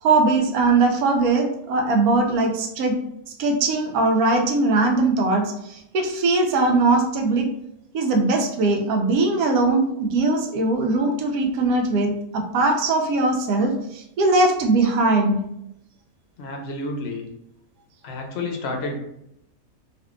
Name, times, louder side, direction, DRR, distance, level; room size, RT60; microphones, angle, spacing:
voice 1, 0.0-3.0 3.4-7.5 7.9-15.4, right 3 dB, 90° right, 3 dB, 1.1 m, -20 dB
voice 2, 16.4-17.3 18.0-19.0, left 2 dB, 60° left, 1 dB, 0.7 m, -30 dB
3.4 x 2.6 x 2.4 m, 0.81 s
omnidirectional pair, 1.5 m